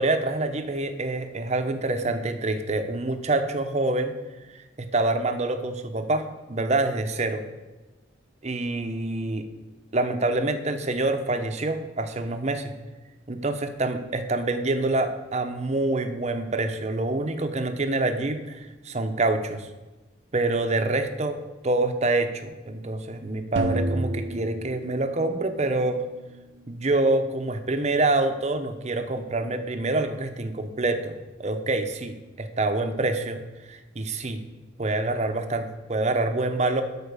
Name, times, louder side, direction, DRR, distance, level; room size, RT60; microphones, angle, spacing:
voice 1, 0.0-4.1 4.5-4.6 4.9-7.4 8.4-9.4 9.9-12.7 13.3-19.7 20.3-26.0 26.7-31.1 31.4-33.4 33.7-34.4 34.8-36.8, right 2 dB, 35° right, 7 dB, 0.8 m, -26 dB
sound 1, 23.6-25.7, right 1 dB, 75° right, 0.8 m, -29 dB
13.0 x 4.5 x 6.8 m, 1.1 s
head